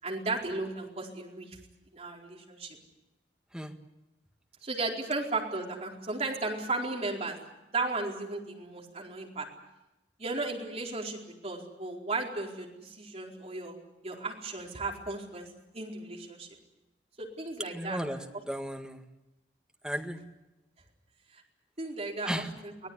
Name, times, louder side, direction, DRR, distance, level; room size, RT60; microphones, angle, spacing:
voice 1, 0.0-1.6 1.9-2.8 4.6-7.4 7.7-9.5 10.2-13.7 14.0-15.5 15.7-16.5 17.2-18.0 21.3-21.4 21.8-22.7, right 3 dB, 35° right, 0 dB, 4.5 m, -35 dB
voice 2, 17.7-19.0 19.8-20.2 22.2-22.5, equal, 5° right, 4 dB, 1.8 m, -35 dB
25.0 x 17.5 x 9.9 m, 1.0 s
head